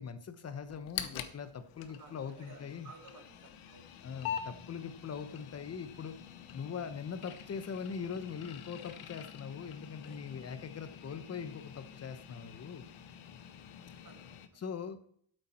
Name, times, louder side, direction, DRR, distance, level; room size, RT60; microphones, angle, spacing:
voice 1, 0.0-2.9 4.0-6.2 6.5-12.9 14.6-15.1, left 6 dB, 30° left, 11 dB, 0.9 m, -42 dB
sound 1, 0.7-14.5, left 9 dB, 75° left, 1.2 m, -46 dB
voice 2, 2.0-3.9 13.8-14.6, right 4 dB, 35° right, 4 dB, 1.7 m, -56 dB
13.0 x 7.9 x 4.4 m, 0.63 s
cardioid pair, 170°, 49 cm